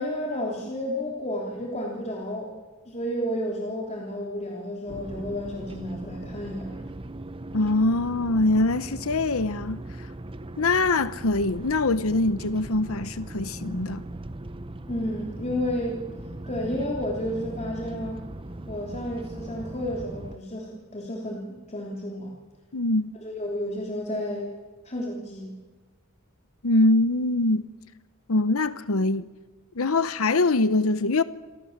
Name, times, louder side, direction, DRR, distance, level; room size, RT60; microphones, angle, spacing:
voice 1, 0.0-2.5 2.9-6.8 14.9-16.1 16.5-18.2 18.7-22.3 23.2-24.5 24.8-25.5, left 1 dB, 30° left, 3.4 m, -31 dB
sound 1, 4.9-20.4, right 1 dB, 25° right, 0.9 m, -39 dB
voice 2, 7.5-9.8 10.6-14.0 22.7-23.1 26.6-27.6 28.3-29.3 29.8-31.2, left 2 dB, 70° left, 0.9 m, -23 dB
28.0 x 24.0 x 7.4 m
head